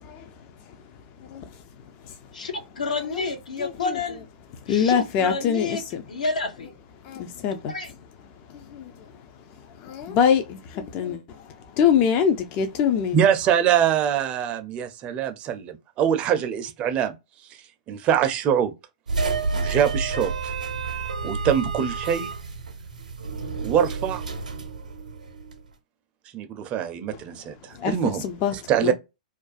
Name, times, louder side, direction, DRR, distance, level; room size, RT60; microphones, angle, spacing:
voice 1, 2.3-4.2 4.7-5.8 6.1-6.7 7.7-7.9, left 4 dB, 75° left, 0.7 m, -29 dB
voice 2, 3.6-4.0 4.7-6.0 7.1-7.7 8.7-8.8 9.9-11.2 11.8-13.2 27.8-27.9 28.2-28.5 28.8-28.9, left 7 dB, 35° left, 0.3 m, -23 dB
voice 3, 13.1-17.1 17.9-18.7 19.5-20.5 21.2-22.3 23.6-24.2 26.3-28.2 28.5-28.9, right 9 dB, 30° right, 0.4 m, -23 dB
sound 1, 19.1-25.6, right 4 dB, 85° right, 0.5 m, -30 dB
2.4 x 2.2 x 2.4 m
figure-of-eight pair, 115°, 4 cm